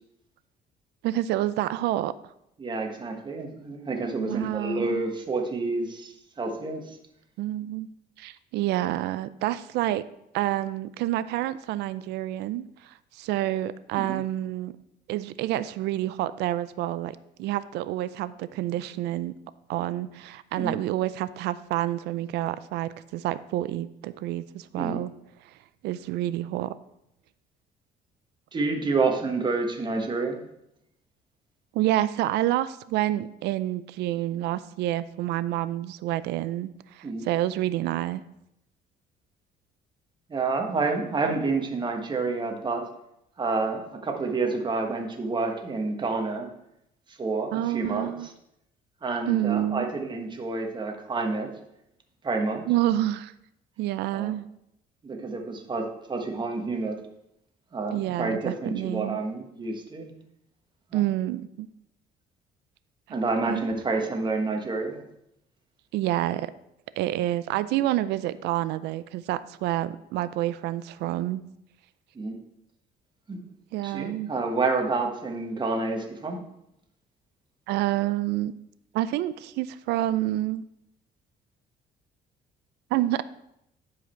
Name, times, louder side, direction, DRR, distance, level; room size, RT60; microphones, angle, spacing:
voice 1, 1.0-2.1 4.2-5.0 7.4-7.9 8.2-10.0 10.3-14.7 15.1-19.3 19.7-25.1 25.8-26.7 31.7-38.2 41.3-41.4 47.5-48.3 49.3-49.9 52.7-53.3 53.8-54.5 57.9-59.2 60.9-61.7 63.5-63.7 65.9-66.5 67.0-71.4 73.7-74.3 77.7-78.5 78.9-80.6 82.9-83.2, right 14 dB, 80° right, 15 dB, 0.5 m, -28 dB
voice 2, 2.6-7.0 13.9-14.2 20.5-20.8 24.7-25.0 28.5-30.4 37.0-37.3 40.3-42.9 43.4-46.5 47.1-48.3 49.0-51.6 52.2-52.7 54.1-54.3 55.0-57.0 57.7-60.1 60.9-61.0 63.1-65.0 72.1-72.4 73.3-73.4 73.8-76.4, right 3 dB, 25° right, 3 dB, 1.3 m, -29 dB
11.0 x 4.9 x 4.5 m, 0.80 s
cardioid pair, 110°, 17 cm